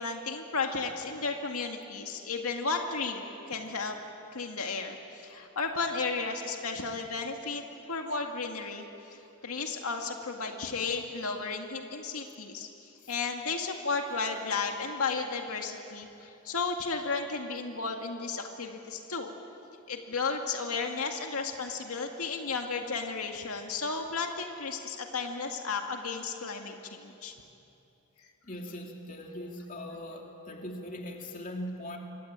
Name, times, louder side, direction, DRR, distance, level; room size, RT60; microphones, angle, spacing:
voice 1, 0.0-4.0 4.3-7.6 7.9-8.9 9.1-19.3 19.9-27.3, left 4 dB, 80° left, 3 dB, 2.2 m, -34 dB
voice 2, 28.4-32.0, left 1 dB, 35° left, 1 dB, 2.9 m, -40 dB
28.0 x 24.0 x 8.9 m, 2.8 s
head